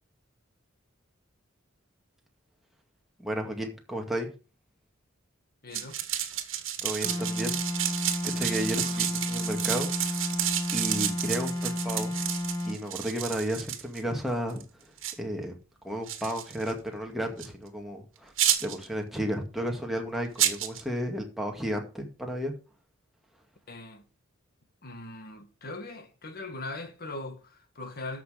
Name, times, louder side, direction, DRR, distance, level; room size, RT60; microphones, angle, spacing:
voice 1, 3.2-4.3 6.8-8.0 8.4-10.2 10.7-12.1 12.6-14.6 15.2-15.6 15.8-18.3 18.6-22.5, equal, ahead, 2.1 m, -33 dB
voice 2, 5.6-6.0 8.8-9.0 23.7-24.0 24.8-28.2, left 2 dB, 50° left, 1.9 m, -40 dB
sound 1, 5.7-14.0 14.5-14.6 15.0-15.1 16.1-16.7 17.4-17.5 18.4-18.9 20.4-20.8, right 11 dB, 70° right, 1.6 m, -30 dB
sound 2, 7.0-12.8, left 1 dB, 20° left, 2.1 m, -32 dB
13.0 x 6.0 x 5.1 m
head